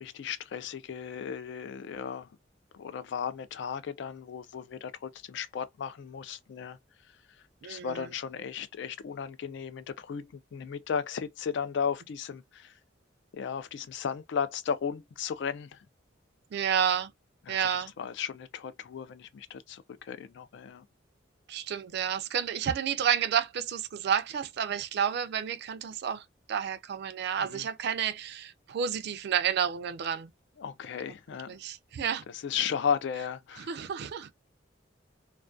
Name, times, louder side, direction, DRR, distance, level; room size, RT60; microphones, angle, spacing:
voice 1, 0.0-2.3 2.7-6.8 7.6-12.7 13.3-15.8 17.5-17.6 18.0-20.8 27.4-27.6 30.6-31.6 32.4-33.7, left 7 dB, 65° left, 0.3 m, -35 dB
voice 2, 7.6-8.1 16.5-17.1 17.5-17.9 21.5-26.2 26.5-30.3 31.5-32.2 33.6-34.3, right 8 dB, 60° right, 0.3 m, -30 dB
2.3 x 2.2 x 2.4 m
head